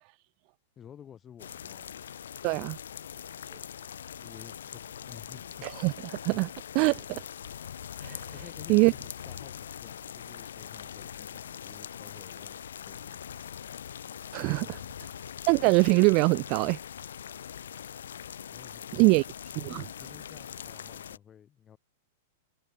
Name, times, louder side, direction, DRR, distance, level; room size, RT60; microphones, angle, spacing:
voice 1, 0.8-2.1 4.1-5.7 8.3-13.5 14.5-14.9 18.5-19.2 19.5-21.8, left 9 dB, 25° left, 2.0 m, -52 dB
sound 1, 1.4-21.2, left 9 dB, 80° left, 1.2 m, -42 dB
voice 2, 2.4-2.8 5.6-7.2 8.0-8.2 8.7-8.9 14.3-14.8 15.5-16.8 18.9-19.2 19.7-19.8, right 32 dB, 45° right, 0.4 m, -23 dB
hypercardioid pair, 115°, 0 cm